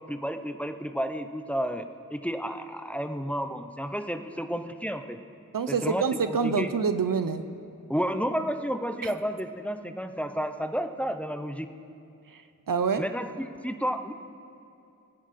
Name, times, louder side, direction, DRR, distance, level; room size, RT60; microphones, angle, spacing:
voice 1, 0.1-5.2 5.7-6.7 7.9-11.7 13.0-14.1, equal, 5° left, 8 dB, 0.7 m, -31 dB
voice 2, 5.5-7.4 9.0-9.1 12.3-13.0, right 5 dB, 85° right, 11 dB, 0.7 m, -27 dB
20.0 x 10.0 x 4.2 m, 2.6 s
wide cardioid pair, 45°, 32 cm